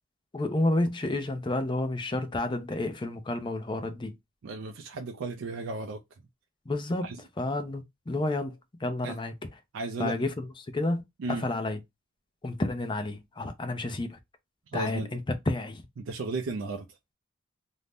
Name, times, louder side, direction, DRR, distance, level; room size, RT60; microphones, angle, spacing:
voice 1, 0.3-4.1 6.7-9.3 10.0-10.5 10.7-11.0 11.3-11.8 12.4-14.2 14.7-15.8, left 2 dB, 25° left, 0.4 m, -30 dB
voice 2, 4.4-6.0 7.0-7.2 9.0-9.2 9.7-10.1 11.2-11.5 14.7-15.1 16.0-16.9, right 3 dB, 65° right, 0.4 m, -34 dB
2.6 x 2.1 x 3.3 m
head